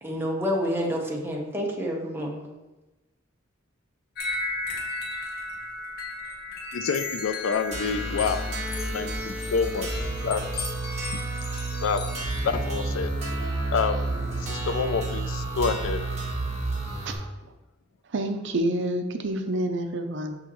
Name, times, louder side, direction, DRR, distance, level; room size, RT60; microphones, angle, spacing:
voice 1, 0.0-2.4, equal, 10° right, -1 dB, 1.0 m, -28 dB
sound 1, 4.2-12.8, left 3 dB, 55° left, 1.0 m, -35 dB
voice 2, 6.7-8.4 8.9-9.9 10.2-10.7 11.8-12.0 12.4-13.1 13.7-14.1 14.4-16.0, left 5 dB, 80° left, 10 dB, 0.4 m, -27 dB
sound 2, 7.7-17.1, right 2 dB, 35° right, 1.5 m, -30 dB
voice 3, 18.1-20.4, right 1 dB, 65° right, 6 dB, 0.6 m, -28 dB
6.2 x 5.6 x 3.1 m, 1.1 s
head